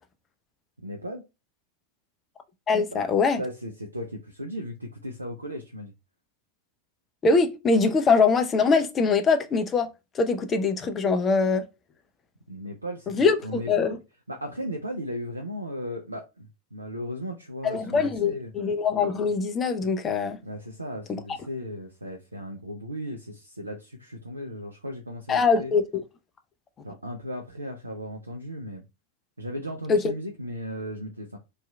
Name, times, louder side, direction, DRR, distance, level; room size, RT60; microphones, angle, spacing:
voice 1, 0.8-1.2 2.9-3.0 3.4-5.9 12.5-14.0 14.3-18.5 20.4-25.7 26.8-28.8 29.4-31.4, equal, 80° right, 0.3 m, -36 dB
voice 2, 2.7-3.4 7.2-9.9 10.1-11.6 13.1-14.0 17.6-20.4 25.3-26.0 29.9-30.1, left 4 dB, 25° left, 0.4 m, -23 dB
2.8 x 2.3 x 2.2 m
figure-of-eight pair, 90°, 0 cm